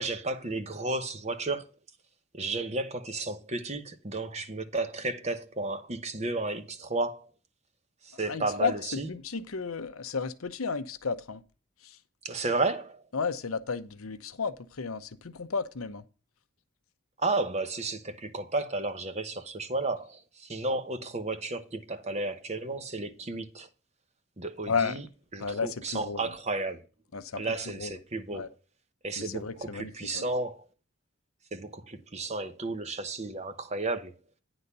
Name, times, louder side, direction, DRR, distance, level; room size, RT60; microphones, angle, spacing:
voice 1, 0.0-1.7 2.3-7.3 8.0-9.1 12.2-13.0 17.2-23.7 24.4-25.0 25.3-26.8 27.4-28.5 29.0-30.7 31.5-34.1, right 2 dB, 30° right, 0.9 m, -33 dB
voice 2, 8.2-11.4 11.8-12.0 13.1-16.0 24.7-25.0 25.4-26.2 27.1-27.4 27.7-27.9 28.3-28.5 29.2-30.3, left 5 dB, 85° left, 0.8 m, -33 dB
9.8 x 4.0 x 6.7 m
head